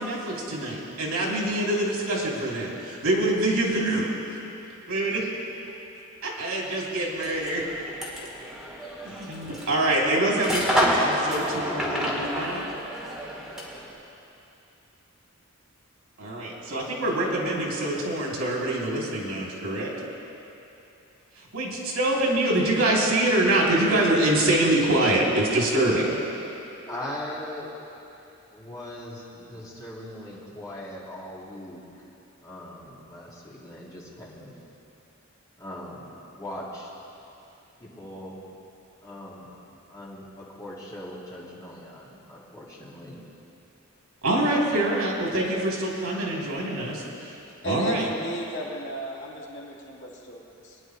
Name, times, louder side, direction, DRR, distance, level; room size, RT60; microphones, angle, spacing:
voice 1, 0.0-4.3 4.9-5.3 6.2-7.6 9.0-12.6 16.2-19.9 21.4-26.1 44.2-47.3 47.6-48.1, right 1 dB, 85° right, -3 dB, 2.8 m, -25 dB
sound 1, 7.1-13.9, equal, 5° right, 2.2 m, -29 dB
voice 2, 26.9-27.7 28.5-31.9 32.4-34.5 35.6-36.0 36.3-36.9 37.8-38.4 39.0-39.5 39.9-43.2, left 1 dB, 15° left, -7 dB, 2.4 m, -40 dB
voice 3, 47.6-50.8, right 1 dB, 60° left, -4 dB, 2.2 m, -34 dB
23.5 x 10.5 x 3.2 m, 2.8 s
head